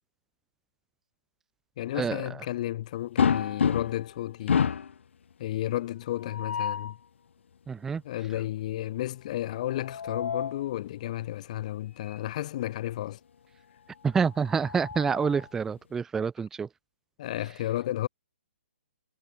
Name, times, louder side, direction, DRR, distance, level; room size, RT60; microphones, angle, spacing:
voice 1, 1.8-4.6 5.4-7.0 8.0-13.2 17.2-18.1, left 13 dB, 30° left, 1.7 m, -32 dB
sound 1, 3.2-4.1 4.5-5.0 6.2-6.9 9.6-10.6 12.1-12.2 12.6-12.7 14.2-15.5, left 7 dB, 65° left, 1.9 m, -29 dB
voice 2, 7.7-8.0 14.0-16.7, right 6 dB, 5° right, 0.7 m, -27 dB
hypercardioid pair, 170°, 7 cm